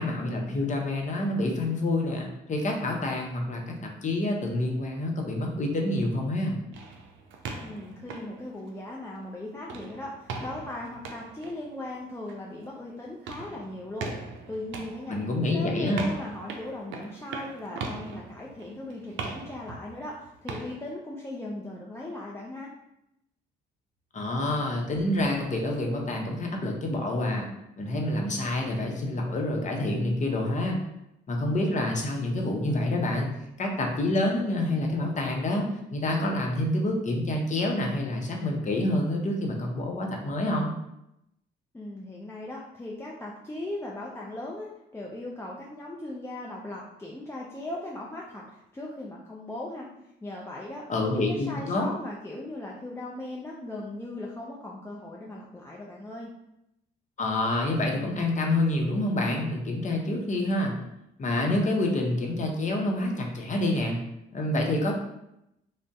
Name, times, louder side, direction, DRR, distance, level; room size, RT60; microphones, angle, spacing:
voice 1, 0.0-6.6 15.1-16.0 24.1-27.5 27.8-30.8 31.3-33.3 33.6-40.7 50.9-51.9 57.2-60.7 61.2-64.0 64.3-64.9, left 1 dB, 40° left, 1 dB, 0.7 m, -27 dB
sound 1, 6.7-9.2 9.6-20.8, right 4 dB, 75° right, 0.5 m, -40 dB
voice 2, 7.6-14.1 14.5-15.2 15.5-22.7 41.7-44.7 44.9-49.9 50.2-56.3, left 1 dB, 10° left, -3 dB, 0.4 m, -38 dB
2.5 x 2.1 x 3.5 m, 0.84 s
supercardioid pair, 65°, 20 cm